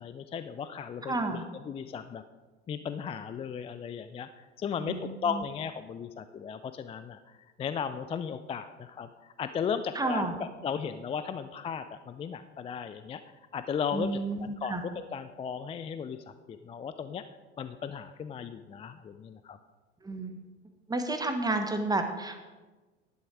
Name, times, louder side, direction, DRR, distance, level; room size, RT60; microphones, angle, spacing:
voice 1, 0.0-1.4 1.7-2.2 2.7-10.2 10.6-13.2 13.5-17.2 17.6-19.6, left 7 dB, 15° left, 11 dB, 0.4 m, -36 dB
voice 2, 1.0-1.4 4.8-5.4 9.9-10.3 13.9-14.8 20.0-20.4 20.9-22.4, right 2 dB, 10° right, 6 dB, 1.4 m, -31 dB
11.0 x 11.0 x 4.7 m, 1.2 s
figure-of-eight pair, 75°, 34 cm